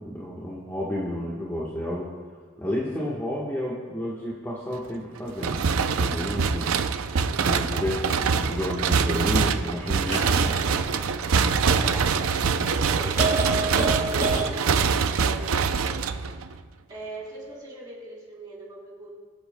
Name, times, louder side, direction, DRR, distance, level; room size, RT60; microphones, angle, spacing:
voice 1, 0.0-2.1 2.6-6.7 7.4-10.6 12.5-12.7, left 1 dB, 10° left, -6 dB, 1.2 m, -31 dB
sound 1, 5.4-16.6, right 5 dB, 90° right, 0.5 m, -24 dB
sound 2, 8.2-8.3 9.9-11.9 12.5-12.6 13.2-14.5, right 2 dB, 35° right, 1.8 m, -29 dB
voice 2, 11.6-16.1 16.9-19.1, right 1 dB, 20° right, -5 dB, 3.4 m, -40 dB
23.5 x 8.0 x 2.2 m, 1.5 s
head